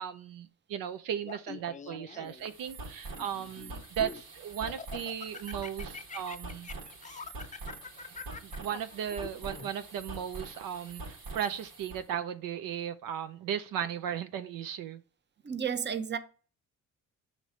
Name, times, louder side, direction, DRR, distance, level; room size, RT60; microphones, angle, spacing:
voice 1, 0.0-6.7 8.4-15.0, right 9 dB, 70° right, 0.5 m, -36 dB
Laughter, 1.2-2.5 3.1-4.2 4.7-9.7, left 6 dB, 20° left, 0.4 m, -45 dB
sound 1, 2.3-12.0, right 3 dB, 90° right, 1.8 m, -45 dB
voice 2, 15.4-16.2, right 7 dB, 30° right, 0.7 m, -32 dB
6.4 x 3.2 x 5.0 m
supercardioid pair, 70°, 34 cm